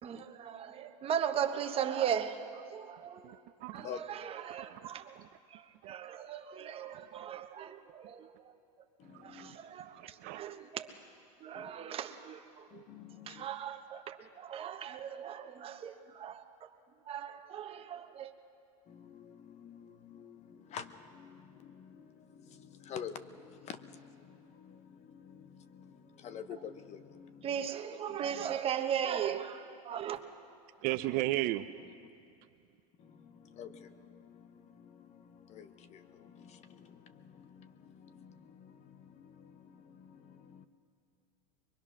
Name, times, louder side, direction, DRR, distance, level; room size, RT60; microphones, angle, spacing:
voice 1, 0.0-3.4 3.7-5.2 5.5-8.5 9.2-10.9 11.4-12.8 13.3-16.7 17.1-18.3 27.4-30.2, right 9 dB, 30° right, 1.2 m, -38 dB
voice 2, 3.2-3.8 4.6-4.9 5.1-5.3 5.8-5.9 6.9-7.3 9.1-10.4 30.8-31.7, right 17 dB, 45° right, 0.7 m, -36 dB
voice 3, 9.0-9.6 11.5-11.7 12.7-13.5 18.9-27.6 28.1-28.6 33.0-40.7, left 7 dB, 35° left, 1.0 m, -49 dB
23.5 x 23.0 x 6.2 m
supercardioid pair, 125°, 20 cm